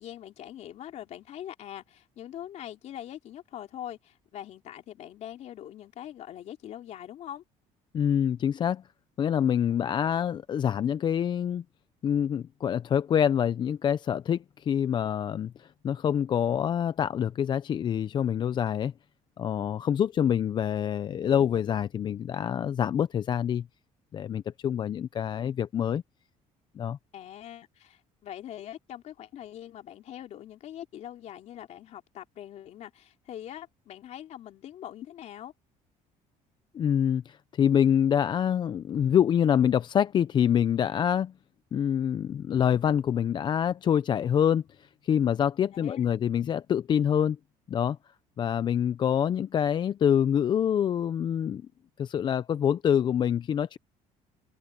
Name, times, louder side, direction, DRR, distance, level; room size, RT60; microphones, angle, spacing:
voice 1, 0.0-7.4 27.1-35.5 45.7-46.0, left 11 dB, 55° left, 3.4 m, -43 dB
voice 2, 7.9-8.8 9.2-11.6 12.0-18.9 19.4-23.7 24.1-26.0 26.8-27.0 36.7-41.3 41.7-47.4 47.7-48.0 48.4-51.6 52.0-53.8, left 9 dB, 35° left, 0.4 m, -26 dB
open air
cardioid pair, 145°, 14 cm